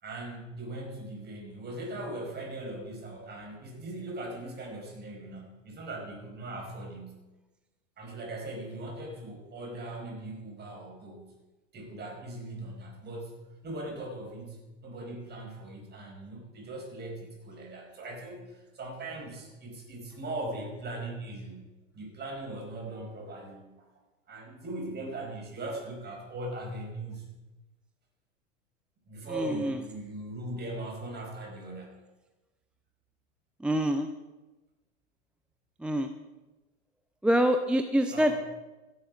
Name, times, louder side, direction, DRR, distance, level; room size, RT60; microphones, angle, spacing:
voice 1, 0.0-7.2 8.0-11.3 11.7-21.6 21.9-23.6 24.3-27.3 29.1-31.9 38.1-38.3, right 1 dB, 25° right, 0 dB, 4.9 m, -39 dB
voice 2, 29.4-29.7 33.6-34.1 35.8-36.1 37.2-38.3, right 1 dB, 5° right, 8 dB, 0.4 m, -25 dB
15.5 x 8.3 x 5.0 m, 1.1 s
hypercardioid pair, 100°, 37 cm